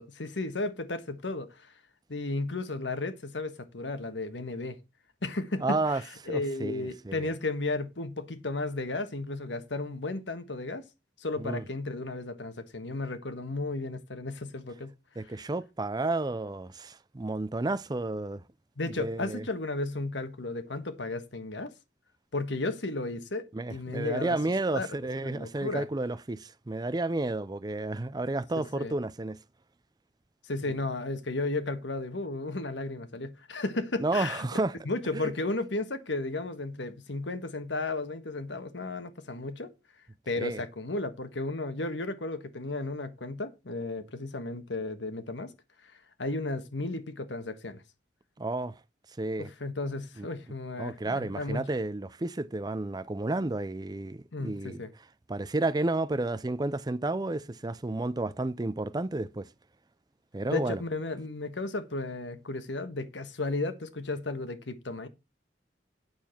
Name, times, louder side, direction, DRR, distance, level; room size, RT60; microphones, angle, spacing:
voice 1, 0.0-1.7 2.1-4.8 5.2-5.8 6.3-10.8 11.2-14.9 18.8-21.7 22.3-24.4 24.7-24.9 25.2-25.9 28.5-28.9 30.5-34.4 34.8-39.7 40.3-45.5 46.2-47.8 49.4-51.7 54.3-54.9 60.5-65.1, left 2 dB, 80° left, 1.5 m, -34 dB
voice 2, 5.6-7.3 11.4-11.6 15.2-18.4 18.9-19.4 23.5-29.4 34.0-34.7 35.1-35.3 40.4-40.6 48.4-48.7 49.2-49.5 50.2-50.3 50.8-54.8 55.3-59.5 60.3-60.8, right 2 dB, 20° right, 0.5 m, -31 dB
9.3 x 7.1 x 4.5 m
head